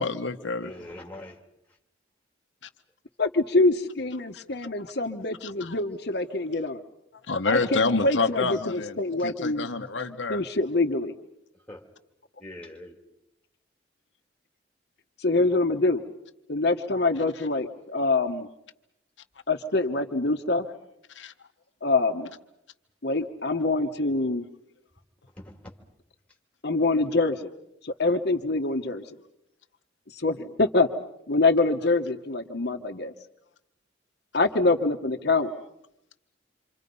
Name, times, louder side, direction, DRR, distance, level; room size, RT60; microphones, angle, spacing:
voice 1, 0.0-0.7 4.3-4.4 5.4-5.8 7.3-9.0 9.2-10.4 21.1-21.3, left 3 dB, 80° left, 7 dB, 1.0 m, -28 dB
voice 2, 0.6-1.4 1.7-1.8 9.2-9.3 11.7-11.9 12.4-13.0 25.3-25.7, left 1 dB, 5° left, 2 dB, 3.0 m, -43 dB
voice 3, 3.2-6.8 7.4-9.9 10.3-11.1 15.2-16.0 16.5-18.5 19.5-20.7 21.8-22.3 23.0-24.5 26.6-27.5 27.8-29.1 30.1-30.9 31.3-33.1 34.3-35.5, left 2 dB, 60° left, 5 dB, 1.1 m, -25 dB
27.5 x 26.0 x 5.4 m, 0.82 s
head